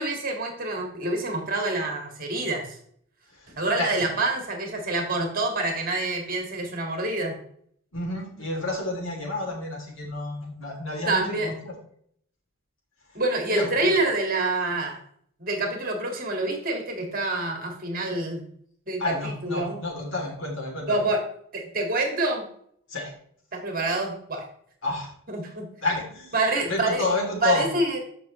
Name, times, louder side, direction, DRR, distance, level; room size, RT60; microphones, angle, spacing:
voice 1, 0.0-2.8 3.6-7.4 11.1-11.5 13.1-15.0 15.4-18.4 18.9-19.8 20.9-21.2 21.5-22.5 23.5-24.4 25.3-25.7 26.3-27.0 27.4-28.0, right 2 dB, 40° right, 2 dB, 2.0 m, -26 dB
voice 2, 3.3-4.0 7.9-11.7 13.1-13.2 13.5-14.0 19.0-21.0 22.9-23.1 24.8-25.1 25.8-27.7, left 2 dB, 60° left, 0 dB, 3.0 m, -30 dB
13.5 x 5.9 x 3.1 m, 0.64 s
head